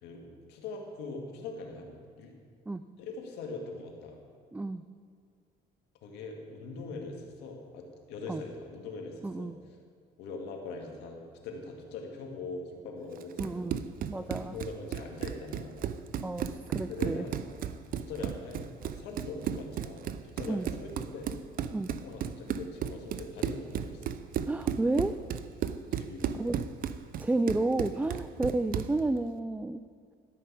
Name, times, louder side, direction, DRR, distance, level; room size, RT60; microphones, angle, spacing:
voice 1, 0.0-2.3 3.0-4.2 6.0-9.5 10.2-13.7 14.1-15.8 16.9-17.3 18.0-21.3 21.9-24.1 25.9-26.3 28.0-28.2, left 3 dB, 90° left, 2 dB, 2.0 m, -42 dB
voice 2, 4.5-4.8 8.3-8.4 9.2-9.6 13.4-13.8 14.1-14.6 16.2-17.3 20.5-20.7 21.7-21.9 24.5-25.2 26.4-26.6 27.2-29.8, right 2 dB, 10° right, 10 dB, 0.3 m, -31 dB
Run, 13.2-29.0, right 9 dB, 55° right, 0.6 m, -35 dB
13.0 x 5.7 x 8.4 m, 2.1 s
cardioid pair, 110°, 17 cm